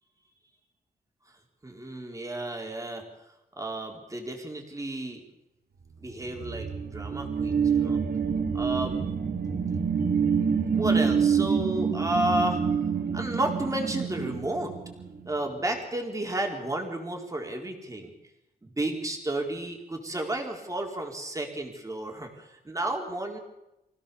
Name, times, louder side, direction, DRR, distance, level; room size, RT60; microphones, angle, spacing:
voice 1, 1.6-3.0 3.6-5.2 6.0-8.0 8.5-9.1 10.7-12.6 13.1-14.7 15.3-18.1 18.6-23.4, right 1 dB, 20° right, 2 dB, 4.1 m, -32 dB
sound 1, 6.1-15.3, right 6 dB, 70° right, 2.5 m, -27 dB
25.5 x 16.5 x 7.0 m, 0.91 s
wide cardioid pair, 140°, 17 cm